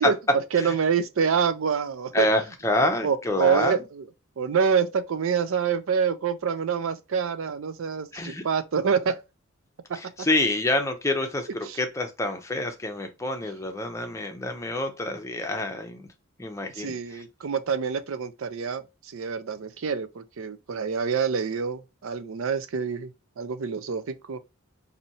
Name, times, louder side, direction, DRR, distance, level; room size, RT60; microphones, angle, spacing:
voice 1, 0.0-2.3 3.0-4.1 4.4-9.2 11.6-11.8 16.6-24.4, right 6 dB, 65° right, 0.4 m, -26 dB
voice 2, 2.1-3.8 8.1-8.4 9.9-16.1 16.4-17.2, left 1 dB, 15° left, 0.6 m, -27 dB
4.2 x 2.7 x 2.8 m
head